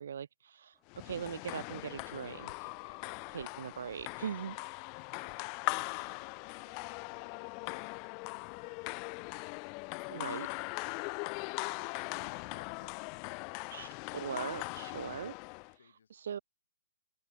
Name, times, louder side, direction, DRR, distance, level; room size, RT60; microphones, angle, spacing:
voice 1, 0.0-2.7 3.3-4.6 10.1-10.5 13.7-15.3 16.1-16.4, right 8 dB, 60° right, 0.5 m, -40 dB
sound 1, 0.7-12.0, left 9 dB, 15° left, 3.7 m, -72 dB
sound 2, 0.9-15.7, left 38 dB, 30° left, 0.5 m, -40 dB
voice 2, 2.7-3.3 4.5-4.7 5.1-7.9 8.3-9.7 15.8-16.4, left 7 dB, 65° left, 6.6 m, -63 dB
open air
figure-of-eight pair, 130°, 0 cm